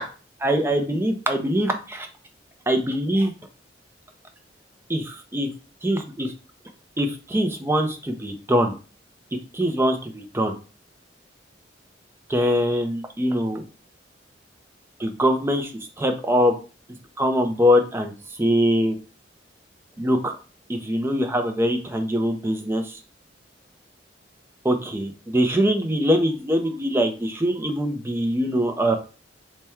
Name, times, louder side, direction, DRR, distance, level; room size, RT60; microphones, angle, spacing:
voice 1, 0.4-2.1 2.7-3.3 4.9-5.5 5.8-6.3 7.0-8.7 9.5-10.5 12.3-13.6 15.0-15.7 16.0-16.5 17.2-18.1 18.4-19.0 20.0-20.4 20.7-23.0 24.6-29.0, equal, 15° right, 5 dB, 0.5 m, -23 dB
3.4 x 2.2 x 4.3 m, 0.34 s
head